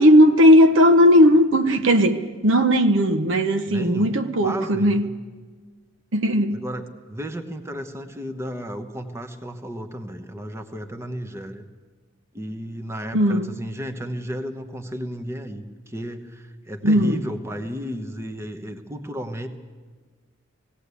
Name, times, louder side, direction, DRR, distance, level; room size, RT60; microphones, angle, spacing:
voice 1, 0.0-5.1 6.1-6.6 13.1-13.5 16.8-17.2, equal, 65° right, 0.9 m, -16 dB
voice 2, 3.7-5.1 6.5-11.6 12.3-19.5, equal, 15° right, 1.1 m, -33 dB
18.5 x 17.0 x 8.3 m
head